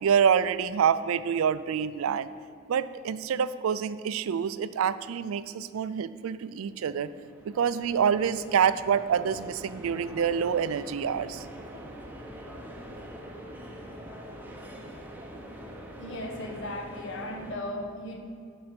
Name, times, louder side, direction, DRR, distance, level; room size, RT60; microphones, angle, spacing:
voice 1, 0.0-2.3 2.7-7.1 7.4-11.4, right 7 dB, 70° right, 14 dB, 0.3 m, -26 dB
sound 1, 6.7-17.5, equal, 10° right, 0.8 m, -44 dB
voice 2, 16.0-18.2, left 1 dB, 65° left, 4 dB, 1.0 m, -36 dB
7.7 x 5.5 x 5.8 m, 2.3 s
head